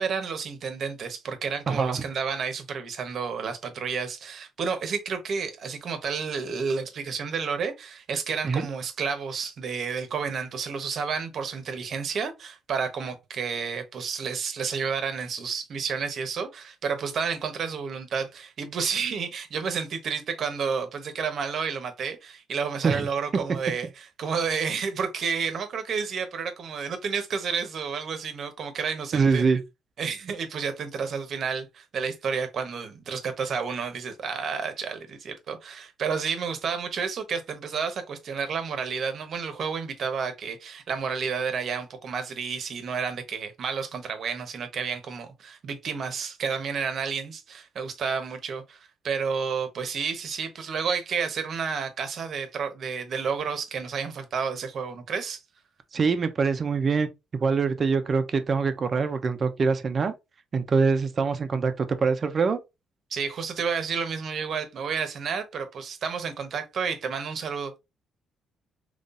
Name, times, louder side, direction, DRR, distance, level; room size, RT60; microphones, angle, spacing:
voice 1, 0.0-29.4 30.0-55.4 63.1-67.7, right 6 dB, 60° right, 1.0 m, -31 dB
voice 2, 1.7-2.0 8.4-8.7 22.8-23.1 29.1-29.6 55.9-57.1 57.4-60.1 60.5-62.6, right 5 dB, 45° right, 0.7 m, -24 dB
4.0 x 3.1 x 2.5 m
cardioid pair, 90°, 0 cm